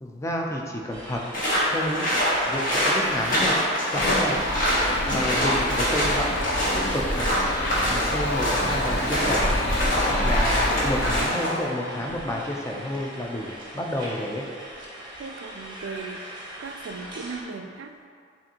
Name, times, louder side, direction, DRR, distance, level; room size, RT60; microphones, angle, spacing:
voice 1, 0.0-1.2 1.7-2.1 2.5-3.5 3.9-4.4 5.1-6.3 6.9-7.4 7.9-9.6 10.1-14.4, left 1 dB, 15° left, -1 dB, 0.5 m, -30 dB
sound 1, 0.9-17.4, right 1 dB, 25° right, 0.7 m, -41 dB
sound 2, 1.3-11.6, equal, 50° left, 1.2 m, -25 dB
sound 3, 3.9-11.3, left 1 dB, 65° left, 0.7 m, -27 dB
voice 2, 15.2-16.2 16.6-18.1, right 4 dB, 90° right, 6 dB, 0.3 m, -37 dB
7.3 x 2.6 x 2.8 m, 2.3 s
head